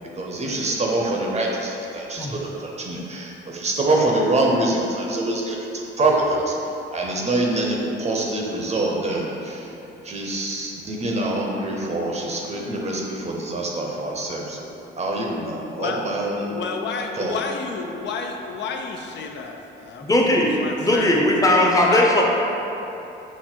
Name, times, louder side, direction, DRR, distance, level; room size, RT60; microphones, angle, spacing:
voice 1, 0.2-5.7 6.0-6.5 6.9-9.7 10.0-14.7 14.9-16.5 17.2-17.4, right 2 dB, 35° right, -1 dB, 0.7 m, -25 dB
voice 2, 16.5-20.1 20.6-21.1 21.5-22.2, left 5 dB, 65° left, 2 dB, 0.4 m, -30 dB
voice 3, 20.1-20.5 20.8-22.2, left 1 dB, 15° left, -2 dB, 0.7 m, -18 dB
5.8 x 2.1 x 4.4 m, 3.0 s
cardioid pair, 90°, 20 cm